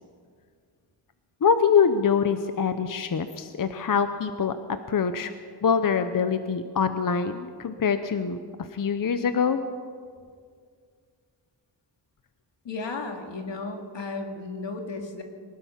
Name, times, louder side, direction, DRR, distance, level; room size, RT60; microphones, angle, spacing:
voice 1, 1.4-4.5 4.9-5.3 5.6-8.4 8.7-9.6, left 6 dB, 50° left, 9 dB, 0.8 m, -24 dB
voice 2, 12.6-15.2, left 3 dB, 80° left, 3 dB, 2.5 m, -34 dB
24.0 x 19.5 x 5.8 m, 2.1 s
wide cardioid pair, 175°, 43 cm